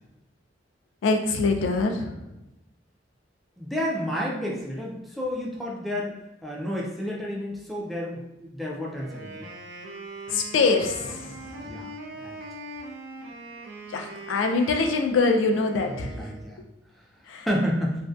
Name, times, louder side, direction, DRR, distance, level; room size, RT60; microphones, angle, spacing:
voice 1, 1.0-2.2 10.3-11.7 13.9-16.2 17.3-17.5, left 3 dB, 80° left, 4 dB, 0.3 m, -24 dB
voice 2, 3.6-6.1 6.4-9.3 11.6-11.9 12.2-12.4 16.0-16.6 17.5-17.9, equal, ahead, -3 dB, 0.3 m, -30 dB
Wind instrument woodwind instrument, 9.0-16.6, right 2 dB, 65° right, 0.4 m, -41 dB
2.5 x 2.2 x 2.3 m, 0.90 s
head